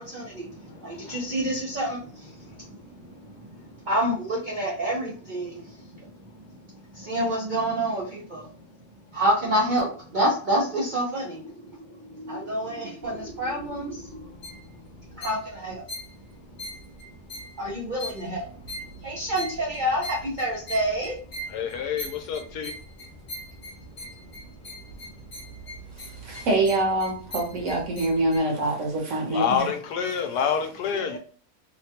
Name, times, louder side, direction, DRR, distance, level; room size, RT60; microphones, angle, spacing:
voice 1, 0.0-6.1 6.5-6.6 6.9-8.5 9.1-14.4 15.1-15.9 17.6-18.6 19.0-21.2 30.9-31.2, right 1 dB, 85° right, 0.4 m, -28 dB
sound 1, 13.0-28.4, equal, 45° left, 0.9 m, -41 dB
voice 2, 21.5-22.7 29.3-31.2, left 7 dB, 80° left, 1.2 m, -27 dB
voice 3, 26.2-29.7, right 2 dB, 55° right, 1.0 m, -25 dB
3.0 x 2.2 x 2.7 m
omnidirectional pair, 1.7 m